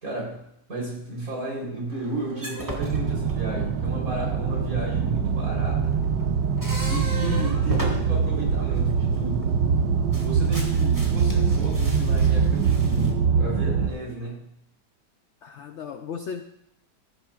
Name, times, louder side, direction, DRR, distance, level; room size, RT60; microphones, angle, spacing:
voice 1, 0.0-6.0 6.9-9.6 10.2-14.5, right 2 dB, 50° right, -3 dB, 4.2 m, -33 dB
sound 1, 1.9-3.9 5.4-9.7 10.0-13.1, right 1 dB, 10° right, 1.5 m, -37 dB
sound 2, 2.8-13.9, right 6 dB, 80° right, 1.4 m, -23 dB
voice 2, 7.2-7.6 15.4-16.4, left 7 dB, 80° left, 7 dB, 0.6 m, -34 dB
15.5 x 10.0 x 2.4 m, 0.79 s
omnidirectional pair, 1.9 m